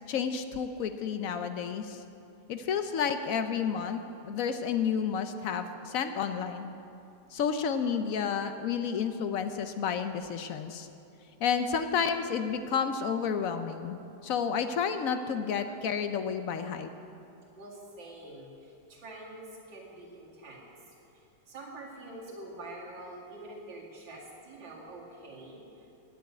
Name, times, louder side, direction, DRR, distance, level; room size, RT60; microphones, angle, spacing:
voice 1, 0.1-2.0 2.5-6.7 7.3-10.9 11.4-14.0 14.2-16.9, left 7 dB, 65° left, 9 dB, 0.8 m, -31 dB
voice 2, 17.6-25.9, right 2 dB, 85° right, -4 dB, 2.8 m, -46 dB
10.5 x 8.2 x 9.4 m, 2.7 s
omnidirectional pair, 2.0 m